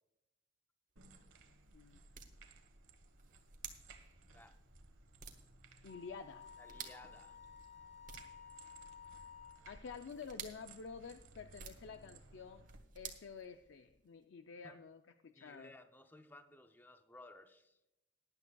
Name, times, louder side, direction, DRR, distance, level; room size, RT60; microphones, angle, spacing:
sound 1, 0.9-14.1, right 7 dB, 40° right, 1.3 m, -56 dB
sound 2, 1.0-12.8, right 3 dB, 80° right, 1.3 m, -61 dB
voice 1, 5.8-6.5 9.2-9.3 9.7-12.6 12.9-15.7, left 5 dB, 65° left, 8 dB, 0.4 m, -50 dB
Wind instrument woodwind instrument, 5.9-9.7, left 7 dB, 35° left, 1.3 m, -55 dB
voice 2, 6.6-7.4 14.6-14.8 15.3-17.8, left 1 dB, 10° left, 8 dB, 0.5 m, -58 dB
18.5 x 10.5 x 2.3 m, 0.93 s
head